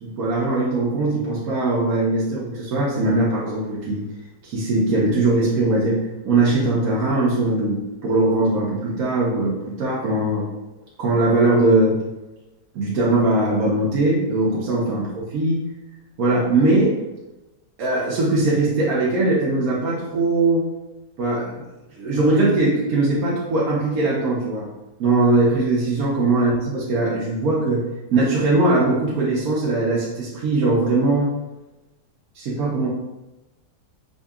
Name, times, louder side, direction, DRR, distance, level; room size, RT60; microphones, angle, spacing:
voice 1, 0.0-4.0 4.4-10.5 11.0-12.0 12.7-15.6 16.2-17.0 17.8-20.7 21.2-21.6 21.9-24.7 25.0-31.3 32.3-32.9, right 2 dB, 65° right, -6 dB, 1.0 m, -20 dB
4.9 x 2.7 x 2.3 m, 1.0 s
omnidirectional pair, 2.0 m